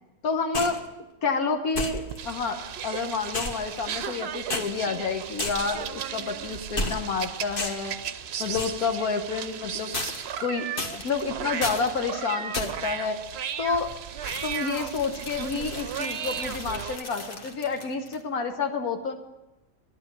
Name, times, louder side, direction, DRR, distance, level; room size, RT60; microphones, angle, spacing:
voice 1, 0.2-0.8 1.2-8.0 8.4-9.9 10.4-10.7 10.9-13.2 13.6-13.9 14.4-19.2, left 4 dB, 90° left, 5 dB, 1.6 m, -29 dB
sound 1, 0.5-0.9 1.7-2.3 3.3-4.2 4.5-4.7 5.4-5.8 6.8-7.2 7.6-7.9 8.5-8.8 9.9-10.4 10.8-11.2 11.6-11.9 12.5-12.9 14.2-18.2, left 2 dB, 40° left, 1.4 m, -34 dB
sound 2, 2.1-17.0, right 8 dB, 60° right, 0.8 m, -35 dB
11.5 x 10.5 x 7.4 m, 0.99 s
omnidirectional pair, 1.5 m